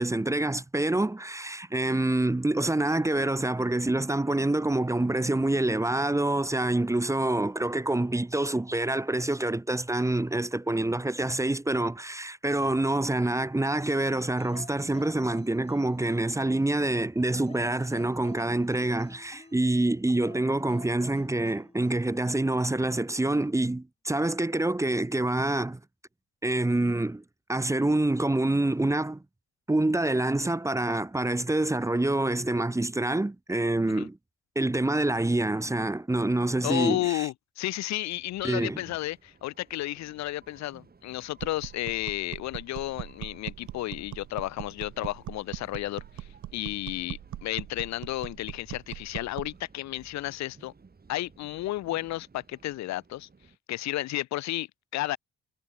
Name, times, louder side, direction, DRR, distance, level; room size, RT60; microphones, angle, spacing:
voice 1, 0.0-25.8 26.4-27.2 27.5-29.2 29.7-34.2 34.6-37.3 38.4-38.8, right 2 dB, 10° right, 0.8 m, -26 dB
sound 1, 14.4-16.6 17.3-19.7 20.1-22.3 23.4-23.6, left 3 dB, 20° left, 2.8 m, -51 dB
voice 2, 36.6-50.7 51.1-53.3 53.7-55.2, left 16 dB, 65° left, 0.5 m, -32 dB
sound 2, 38.0-53.6, right 4 dB, 30° right, 7.4 m, -56 dB
sound 3, 41.4-49.6, right 15 dB, 75° right, 0.9 m, -41 dB
cardioid pair, 90°, 30 cm